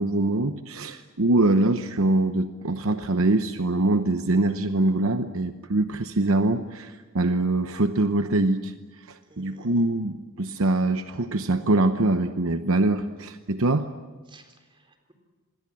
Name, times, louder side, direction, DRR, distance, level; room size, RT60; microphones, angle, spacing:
voice 1, 0.0-8.7 9.1-13.9, right 2 dB, 65° right, 8 dB, 0.9 m, -23 dB
voice 2, 9.2-9.9 14.3-15.1, right 2 dB, 25° right, 5 dB, 3.8 m, -54 dB
26.5 x 21.5 x 7.7 m, 1.3 s
head